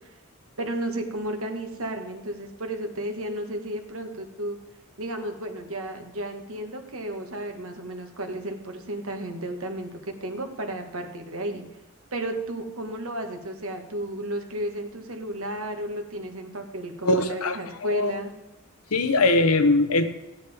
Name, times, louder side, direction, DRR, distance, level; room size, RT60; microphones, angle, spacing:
voice 1, 0.6-4.6 5.0-11.6 12.1-18.3, right 1 dB, 65° right, 5 dB, 1.4 m, -33 dB
voice 2, 17.0-17.6 17.9-18.1 18.9-20.1, left 2 dB, 80° left, 9 dB, 0.9 m, -21 dB
14.0 x 9.9 x 3.5 m, 0.99 s
head